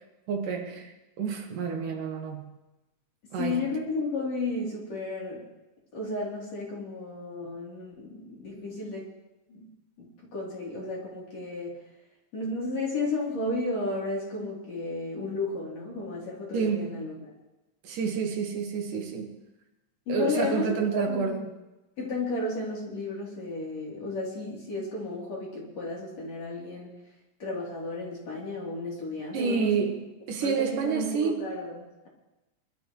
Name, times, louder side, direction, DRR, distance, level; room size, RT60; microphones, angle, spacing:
voice 1, 0.3-2.5 3.3-3.7 16.5-17.0 17.8-19.4 20.1-21.4 29.3-31.6, right 6 dB, 75° right, 2.9 m, -29 dB
voice 2, 3.4-5.5 5.9-9.1 9.5-9.7 10.0-11.7 12.3-17.1 20.1-21.4 22.0-26.9 27.4-29.7 30.4-32.1, left 2 dB, 50° left, 4.6 m, -33 dB
23.0 x 12.5 x 3.2 m
omnidirectional pair, 4.0 m